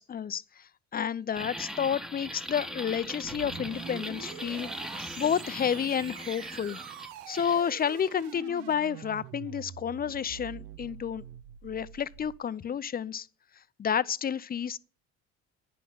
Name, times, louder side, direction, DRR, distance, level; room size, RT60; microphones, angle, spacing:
voice 1, 0.0-4.7 5.2-6.8 7.3-11.2 11.6-13.3 13.8-14.8, left 8 dB, 25° left, 0.5 m, -30 dB
sound 1, 1.3-7.6, equal, ahead, 1.0 m, -40 dB
sound 2, 3.2-12.4, right 11 dB, 75° right, 0.9 m, -45 dB
10.0 x 5.7 x 7.1 m
hypercardioid pair, 60°, 37 cm